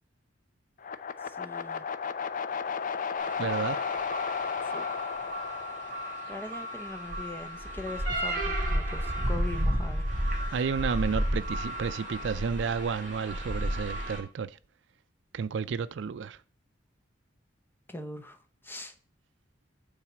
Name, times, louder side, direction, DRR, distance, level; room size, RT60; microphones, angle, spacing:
sound 1, 0.8-6.9, left 6 dB, 45° left, 0.5 m, -34 dB
voice 1, 1.2-1.8 4.7-4.9 6.3-10.0 17.9-18.4 18.6-18.9, left 2 dB, 10° left, 0.8 m, -41 dB
sound 2, 3.2-14.2, equal, 45° right, 4.9 m, -32 dB
voice 2, 3.4-3.8 10.5-14.5 15.3-16.4, right 6 dB, 65° right, 0.4 m, -31 dB
8.8 x 4.0 x 6.1 m
head